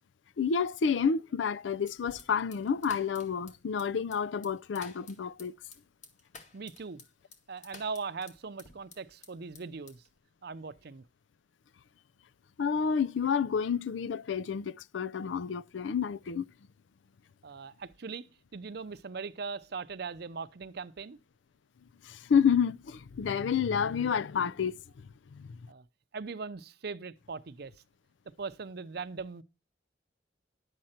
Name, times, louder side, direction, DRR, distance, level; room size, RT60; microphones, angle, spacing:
voice 1, 0.4-5.5 12.6-16.5 22.0-24.7 25.3-25.6, left 6 dB, 85° left, 0.4 m, -29 dB
sound 1, 1.8-9.3 9.5-10.2, left 3 dB, 40° left, 2.0 m, -52 dB
voice 2, 6.5-7.0 7.5-10.0 10.4-11.0 17.4-21.2 25.7-25.8 26.1-27.7 28.4-29.4, right 4 dB, 60° right, 0.6 m, -40 dB
11.0 x 7.7 x 4.3 m
head